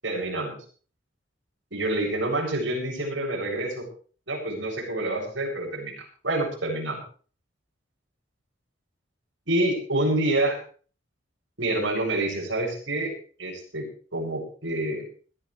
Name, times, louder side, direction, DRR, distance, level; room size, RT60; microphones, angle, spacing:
voice 1, 0.0-0.6 1.7-3.9 4.3-7.0 9.5-10.6 11.6-13.1 13.4-13.8 14.1-15.0, right 1 dB, 80° right, -1 dB, 7.8 m, -27 dB
21.0 x 14.5 x 3.4 m, 0.41 s
head